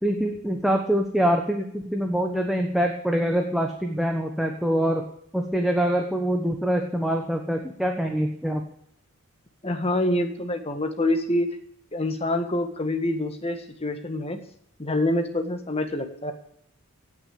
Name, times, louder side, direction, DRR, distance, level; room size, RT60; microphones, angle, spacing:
voice 1, 0.0-5.0 5.3-8.6, equal, ahead, 1 dB, 1.2 m, -24 dB
voice 2, 9.6-11.5 11.9-14.4 14.8-16.3, left 1 dB, 25° left, 7 dB, 1.7 m, -26 dB
17.0 x 6.4 x 8.5 m, 0.70 s
head